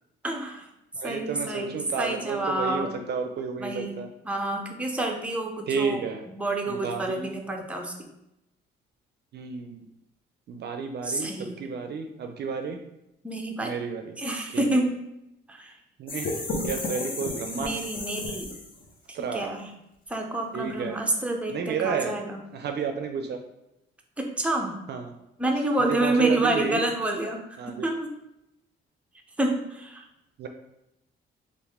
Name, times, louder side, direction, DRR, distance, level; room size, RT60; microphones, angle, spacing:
voice 1, 0.2-0.7 1.0-2.9 3.6-4.0 4.2-7.9 11.0-11.6 13.2-13.7 14.2-14.9 15.5-15.7 17.5-18.6 19.2-19.7 20.1-22.4 24.2-24.8 25.4-28.1 29.4-30.0, right 2 dB, 5° right, 2 dB, 0.6 m, -28 dB
voice 2, 0.9-4.1 5.7-6.2 6.7-7.3 9.3-9.8 10.5-12.8 13.6-14.2 14.5-14.7 16.0-16.3 16.6-17.8 19.1-19.5 20.5-21.0 21.5-22.1 22.5-23.4 24.9-25.1 25.8-26.8 27.6-27.9 30.4-30.5, right 5 dB, 55° right, 5 dB, 0.4 m, -31 dB
sound 1, 16.1-18.9, left 2 dB, 45° left, 0.8 m, -32 dB
3.1 x 2.5 x 3.5 m, 0.86 s
cardioid pair, 90°, 20 cm